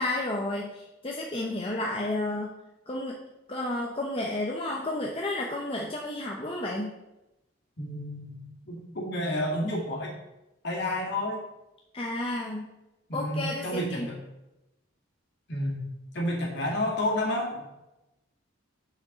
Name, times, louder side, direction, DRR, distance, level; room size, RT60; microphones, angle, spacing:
voice 1, 0.0-2.5 2.9-3.2 3.5-6.9 11.9-12.7 13.1-14.1, left 1 dB, 30° left, -1 dB, 0.8 m, -31 dB
voice 2, 7.8-10.1 10.6-11.4 13.1-14.2 15.5-15.9 16.1-17.7, left 1 dB, 55° left, -2 dB, 2.4 m, -30 dB
6.8 x 5.1 x 6.8 m, 0.96 s
head